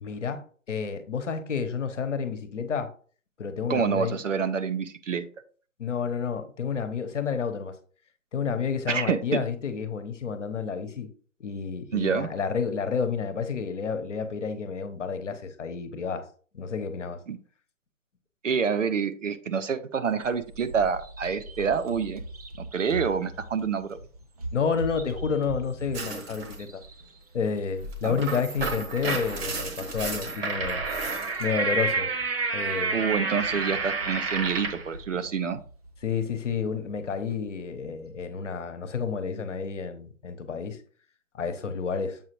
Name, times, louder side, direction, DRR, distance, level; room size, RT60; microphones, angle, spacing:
voice 1, 0.0-2.9 3.4-4.2 5.8-7.8 8.3-11.1 11.4-16.2 16.5-17.2 24.5-26.8 27.3-30.8 31.4-32.1 32.5-33.0 36.0-40.8 41.3-42.2, left 6 dB, 55° left, 1.1 m, -30 dB
voice 2, 3.7-5.3 8.9-9.4 11.9-12.3 17.3-17.4 18.4-22.2 22.6-24.0 28.0-28.2 32.9-35.6, right 6 dB, 60° right, 0.9 m, -27 dB
Bird vocalization bird call bird song, 20.1-38.2, right 1 dB, 30° right, 0.5 m, -42 dB
sound 1, 25.9-26.6 27.9-34.9, right 4 dB, 45° right, 1.4 m, -30 dB
7.5 x 4.9 x 3.1 m
figure-of-eight pair, 145°, 42 cm